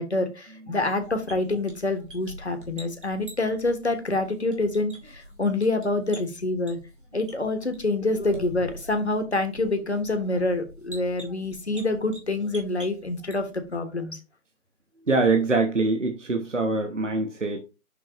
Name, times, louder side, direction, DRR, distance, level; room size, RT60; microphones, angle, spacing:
voice 1, 0.0-6.8 7.1-14.2, left 2 dB, 50° left, 1.4 m, -27 dB
sound 1, 1.0-13.8, equal, 35° right, 2.4 m, -46 dB
voice 2, 15.1-17.6, right 3 dB, 55° right, 1.2 m, -24 dB
6.2 x 5.9 x 3.0 m
figure-of-eight pair, 175°, 43 cm